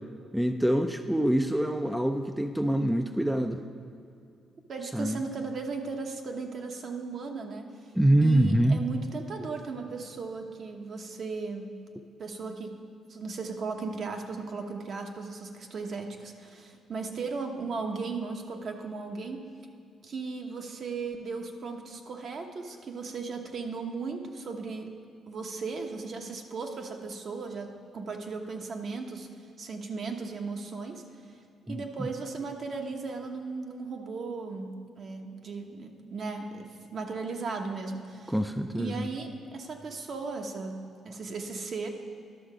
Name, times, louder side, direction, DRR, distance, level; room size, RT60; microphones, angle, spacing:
voice 1, 0.3-3.6 4.9-5.2 7.9-8.8 31.7-32.1 38.3-39.1, right 1 dB, 5° right, 6 dB, 0.4 m, -25 dB
voice 2, 4.7-7.7 8.2-11.8 12.2-12.8 13.1-19.4 20.0-24.9 25.3-29.3 29.6-31.0 31.7-38.3 38.8-41.9, right 4 dB, 55° right, 3 dB, 1.0 m, -36 dB
12.0 x 6.5 x 4.9 m, 2.5 s
cardioid pair, 90°, 0 cm